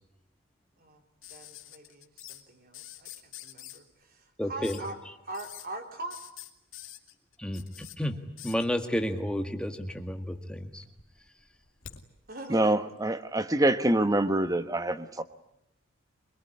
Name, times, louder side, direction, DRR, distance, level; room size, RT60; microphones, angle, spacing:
sound 1, 1.2-2.4 2.7-3.8 4.6-4.9 5.3-5.7 6.1-8.0 8.4-8.7 9.7-10.3 10.6-12.0 13.4-13.5, left 12 dB, 80° left, 2.3 m, -46 dB
voice 1, 1.3-5.0 5.2-6.2 12.3-12.7, right 2 dB, 45° right, 3.7 m, -42 dB
voice 2, 4.4-4.8 7.4-10.8, equal, 5° left, 1.8 m, -31 dB
voice 3, 12.5-15.2, right 1 dB, 20° right, 1.2 m, -25 dB
25.0 x 22.0 x 9.9 m
head